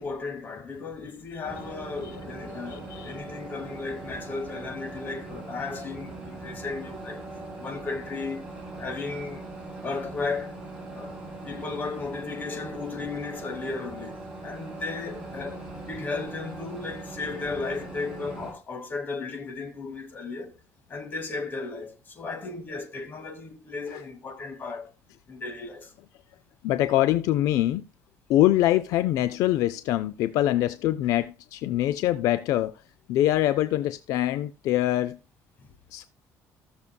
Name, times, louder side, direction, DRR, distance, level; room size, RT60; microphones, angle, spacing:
voice 1, 0.0-7.2 7.6-8.5 8.8-9.5 9.8-10.5 10.9-11.2 11.4-20.5 20.9-24.9 25.3-25.9 35.6-35.7, left 4 dB, 35° left, 2.0 m, -35 dB
sound 1, 1.4-18.5, right 2 dB, 15° right, 4.4 m, -40 dB
voice 2, 2.7-3.2 26.6-27.8 28.3-32.7 33.1-35.2 35.9-36.0, left 14 dB, 75° left, 0.4 m, -24 dB
16.0 x 6.8 x 2.3 m
cardioid pair, 135°, 6 cm